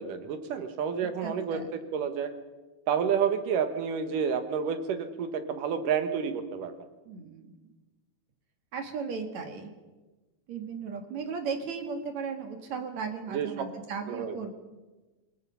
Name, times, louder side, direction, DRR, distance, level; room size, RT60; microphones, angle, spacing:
voice 1, 0.0-2.3 2.9-6.7 13.3-13.5 14.1-14.4, right 7 dB, 90° right, 8 dB, 3.1 m, -30 dB
voice 2, 1.2-1.7 7.1-7.6 8.7-9.7 10.5-14.5, right 5 dB, 65° right, 5 dB, 3.0 m, -36 dB
28.0 x 20.0 x 5.7 m, 1.2 s
omnidirectional pair, 3.6 m